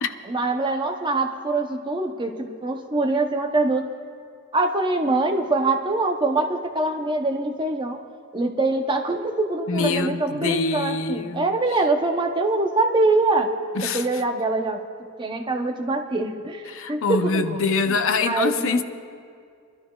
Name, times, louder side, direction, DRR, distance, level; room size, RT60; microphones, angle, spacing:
voice 1, 0.3-3.9 4.5-8.0 8.3-13.5 13.8-14.8 15.2-17.7 18.3-18.8, right 2 dB, 20° right, 4 dB, 0.7 m, -24 dB
voice 2, 9.7-11.5 13.7-14.2 16.7-18.8, left 4 dB, 65° left, 9 dB, 0.6 m, -25 dB
25.0 x 12.5 x 2.3 m, 2.3 s
head